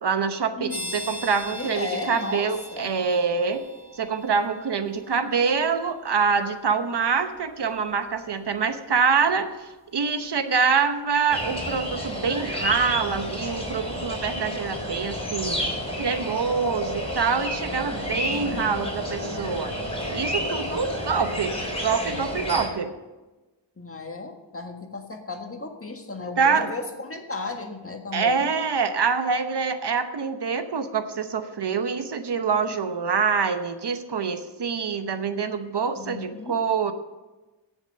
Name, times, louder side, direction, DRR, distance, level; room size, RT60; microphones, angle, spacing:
voice 1, 0.0-3.6 4.0-15.6 16.0-19.7 20.1-21.5 21.8-22.9 26.4-26.7 28.1-36.9, right 5 dB, 60° right, 9 dB, 1.0 m, -25 dB
voice 2, 0.6-0.9 1.5-2.9 18.3-18.7 23.8-28.5 32.7-32.8 36.0-36.6, left 3 dB, 30° left, 4 dB, 1.6 m, -35 dB
sound 1, 0.7-13.2, left 1 dB, 20° right, 2.9 m, -44 dB
sound 2, 11.3-22.7, equal, 15° left, 3.8 m, -30 dB
17.0 x 7.3 x 5.4 m, 1.1 s
wide cardioid pair, 80°, 45 cm